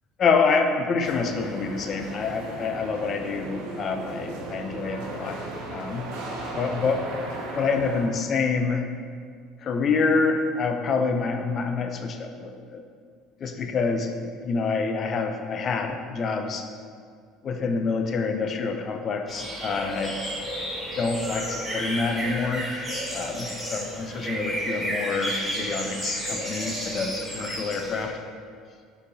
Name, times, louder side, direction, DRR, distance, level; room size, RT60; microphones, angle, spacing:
voice 1, 0.2-5.4 5.7-6.1 6.6-8.9 9.6-12.8 13.4-16.7 17.4-20.2 21.0-22.7 23.1-28.2, left 4 dB, 45° left, 5 dB, 0.4 m, -27 dB
sound 1, 1.0-8.0, right 2 dB, 80° right, 0.6 m, -36 dB
sound 2, 19.3-28.0, equal, 5° right, 1.2 m, -32 dB
4.3 x 3.2 x 2.6 m, 2.1 s
supercardioid pair, 80°, 0 cm